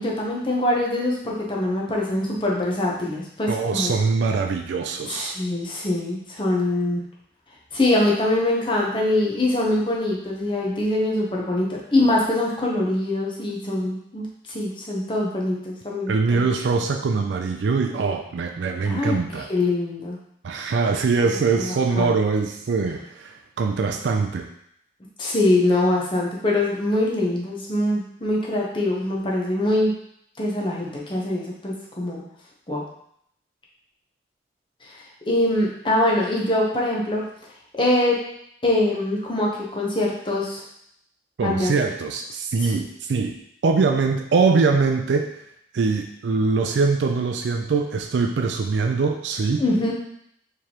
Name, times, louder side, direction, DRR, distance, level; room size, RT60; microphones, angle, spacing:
voice 1, 0.0-3.9 5.1-7.0 7.7-14.2 14.5-16.5 18.8-19.1 19.5-20.2 21.2-21.3 21.6-22.2 25.2-29.9 30.4-32.2 32.7-32.8 35.3-37.2 37.7-38.2 38.6-40.6 41.4-41.7 49.6-49.9, left 1 dB, 30° left, -3 dB, 0.8 m, -23 dB
voice 2, 3.5-5.4 16.1-19.5 20.4-24.5 41.4-43.3 43.6-45.4 45.7-49.6, right 4 dB, 90° right, 4 dB, 0.4 m, -23 dB
4.7 x 3.3 x 2.9 m, 0.72 s
head